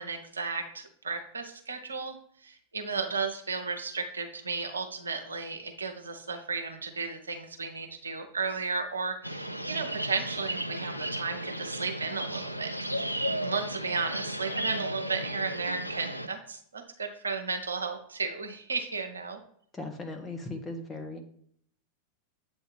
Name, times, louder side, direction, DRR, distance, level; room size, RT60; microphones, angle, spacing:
voice 1, 0.0-2.2 2.4-19.4, right 4 dB, 75° right, 5 dB, 0.7 m, -34 dB
sound 1, 9.2-16.3, right 1 dB, 90° left, 0.3 m, -34 dB
voice 2, 19.7-21.2, left 2 dB, 15° left, 2 dB, 1.0 m, -38 dB
7.5 x 2.7 x 5.2 m, 0.63 s
figure-of-eight pair, 90°, 0 cm